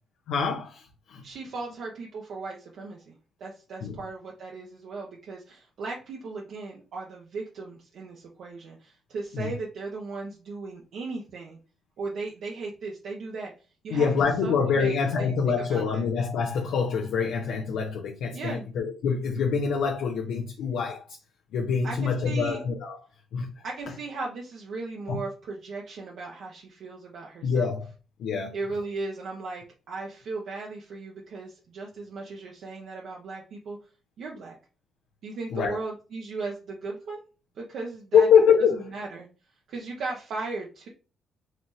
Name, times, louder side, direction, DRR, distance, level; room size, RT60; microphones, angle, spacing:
voice 1, 0.3-1.2 3.8-4.0 9.3-9.5 13.9-21.2 21.5-23.0 23.3-23.6 25.1-25.2 27.4-27.9 28.2-28.6 35.5-35.8 38.1-38.9, left 6 dB, 80° left, 0.6 m, -25 dB
voice 2, 1.2-3.1 3.4-11.6 12.0-13.5 13.8-14.1 14.4-15.3 15.7-16.0 18.3-18.7 21.8-22.6 23.6-27.7 28.5-33.8 34.2-34.6 35.2-37.2 37.6-38.3 38.9-39.3 39.7-40.9, right 3 dB, 70° right, 0.8 m, -37 dB
4.2 x 3.1 x 2.6 m
cardioid pair, 90°, 0 cm